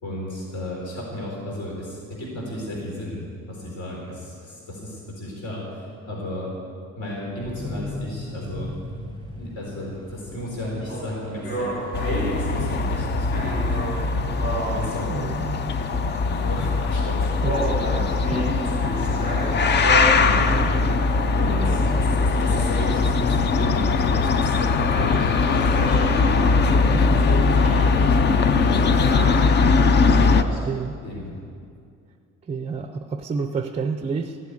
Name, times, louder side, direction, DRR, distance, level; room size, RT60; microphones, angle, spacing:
voice 1, 0.0-6.5 7.0-8.7 9.3-11.7 12.0-14.0 14.6-15.2 15.8-17.3 17.8-18.0 18.8-19.4 19.8-20.7 21.3-25.6 26.2-27.8 28.2-29.0 29.9-30.6 31.0-31.4, left 1 dB, 65° left, -3 dB, 4.2 m, -33 dB
sound 1, 7.4-15.3, left 1 dB, 15° left, 1.6 m, -38 dB
sound 2, 10.9-13.0 13.3-15.4 16.2-16.6 17.4-22.8 24.8-29.4, right 1 dB, 50° left, 3.1 m, -31 dB
sound 3, 11.9-30.4, left 4 dB, 35° left, 0.5 m, -20 dB
voice 2, 15.1-15.7 17.4-17.7 30.6-30.9 32.5-34.4, right 5 dB, 20° right, 7 dB, 0.5 m, -29 dB
15.0 x 8.4 x 9.6 m, 2.3 s
cardioid pair, 170°, 31 cm